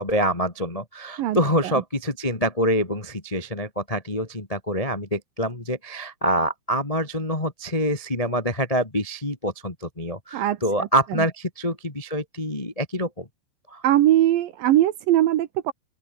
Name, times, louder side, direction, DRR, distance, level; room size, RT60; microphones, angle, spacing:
voice 1, 0.0-13.3 13.7-13.8, equal, 20° left, 0.9 m, -26 dB
voice 2, 10.3-10.9 11.2-11.3 13.8-15.7, right 13 dB, 70° right, 2.5 m, -21 dB
open air
omnidirectional pair, 4.7 m